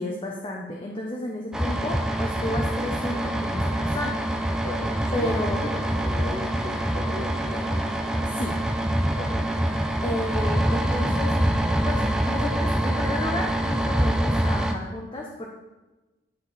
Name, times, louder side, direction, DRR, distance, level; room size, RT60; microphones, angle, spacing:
voice 1, 0.0-4.2 5.1-5.6 8.3-8.5 10.0-11.3 11.9-15.5, left 1 dB, 30° left, -1 dB, 0.7 m, -32 dB
sound 1, 1.5-14.7, right 1 dB, 5° right, 0.4 m, -25 dB
voice 2, 4.6-7.8 9.1-9.5, left 1 dB, 65° left, 0 dB, 1.4 m, -37 dB
9.8 x 4.2 x 4.1 m, 1.1 s
head